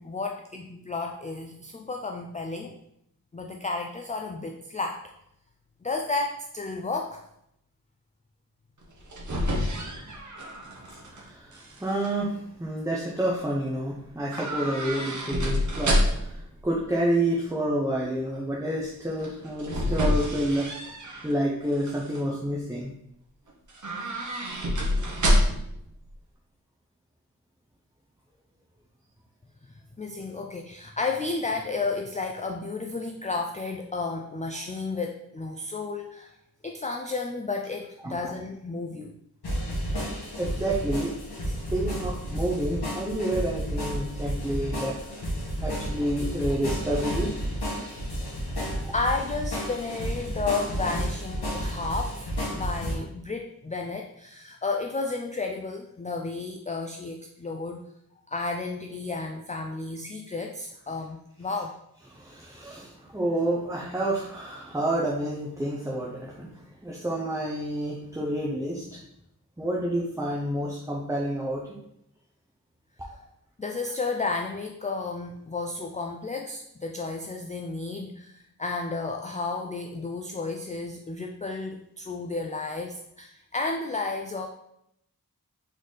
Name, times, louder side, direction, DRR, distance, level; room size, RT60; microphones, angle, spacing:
voice 1, 0.0-2.8 3.3-5.0 5.8-7.2 30.0-36.3 36.6-39.2 41.5-41.6 48.9-57.9 58.3-61.8 73.6-84.5, left 3 dB, 20° left, 2 dB, 0.3 m, -32 dB
sound 1, 8.8-11.2 11.5-12.1 14.3-16.4 19.2-21.3 21.7-22.2 23.7-25.8 26.0-26.1, equal, 50° right, 0.9 m, -27 dB
voice 2, 11.1-20.7 21.2-22.9 38.0-38.1 40.4-41.1 41.4-44.9 45.6-47.3 62.1-69.0 69.6-71.6, right 1 dB, 10° right, -3 dB, 0.7 m, -29 dB
sound 2, 39.4-52.9, equal, 90° left, 1.4 m, -31 dB
4.1 x 3.9 x 3.2 m, 0.77 s
wide cardioid pair, 70°, 38 cm